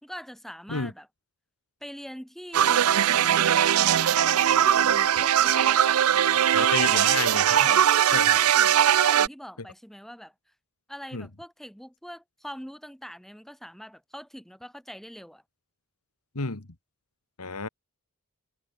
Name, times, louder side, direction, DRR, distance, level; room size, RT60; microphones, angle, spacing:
voice 1, 0.0-1.1 1.8-7.2 7.5-7.9 8.3-10.3 10.9-15.4, equal, ahead, 3.8 m, -43 dB
sound 1, 2.5-9.3, right 10 dB, 75° right, 0.5 m, -20 dB
voice 2, 6.5-7.4 8.1-8.4 11.1-11.3 16.4-16.7 17.4-17.7, left 4 dB, 90° left, 2.1 m, -30 dB
head